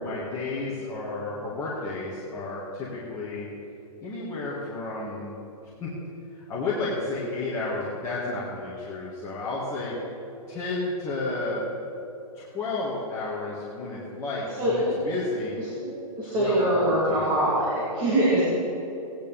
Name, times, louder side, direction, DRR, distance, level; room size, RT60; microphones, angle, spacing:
voice 1, 0.0-3.5 4.0-5.3 5.8-5.9 6.3-10.0 10.5-11.6 12.3-15.6 16.2-17.3, left 3 dB, 15° left, -9 dB, 1.9 m, -32 dB
voice 2, 14.6-15.0 15.8-18.4, right 1 dB, 25° right, -8 dB, 3.1 m, -23 dB
18.0 x 10.0 x 3.5 m, 2.9 s
hypercardioid pair, 155°, 19 cm